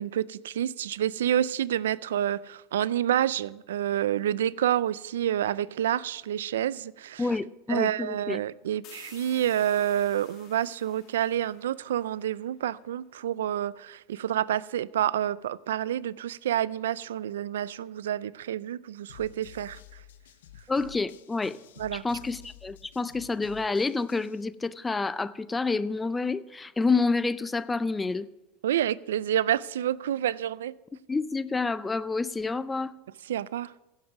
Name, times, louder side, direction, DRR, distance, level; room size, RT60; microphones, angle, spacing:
voice 1, 0.0-7.3 7.7-20.0 21.8-22.0 28.6-30.7 33.3-33.7, right 11 dB, 90° right, 0.3 m, -28 dB
voice 2, 7.2-8.4 20.7-21.6 21.9-28.3 31.1-32.9, left 3 dB, 15° left, 0.4 m, -28 dB
sound 1, 8.8-12.4, left 9 dB, 50° left, 1.7 m, -53 dB
sound 2, 19.1-24.4, left 10 dB, 85° left, 0.7 m, -51 dB
16.0 x 7.4 x 4.8 m
supercardioid pair, 120°, 0 cm